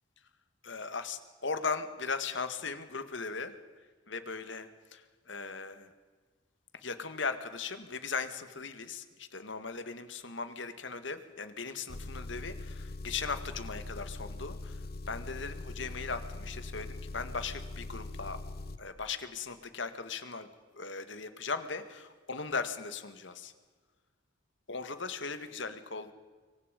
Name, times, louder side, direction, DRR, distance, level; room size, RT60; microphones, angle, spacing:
voice 1, 0.6-3.5 4.1-5.9 6.8-14.7 15.1-18.4 18.8-20.5 20.7-23.5 24.7-26.1, left 4 dB, 65° left, 9 dB, 1.9 m, -38 dB
Engine, 11.9-18.8, left 2 dB, 50° left, 1.1 m, -42 dB
25.5 x 24.0 x 5.3 m, 1.4 s
head